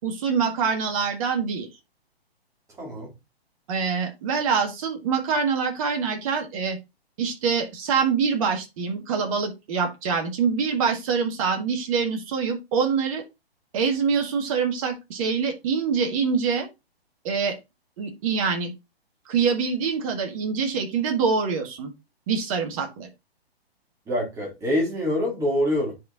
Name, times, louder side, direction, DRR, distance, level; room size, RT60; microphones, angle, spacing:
voice 1, 0.0-1.7 3.7-6.8 7.2-13.2 13.7-16.7 17.2-17.6 18.0-18.7 19.3-21.9 22.3-23.1, right 5 dB, 35° right, 1.6 m, -25 dB
voice 2, 2.8-3.1 24.1-25.9, left 1 dB, 10° right, 2.1 m, -25 dB
10.0 x 4.4 x 2.5 m
figure-of-eight pair, 125°, 31 cm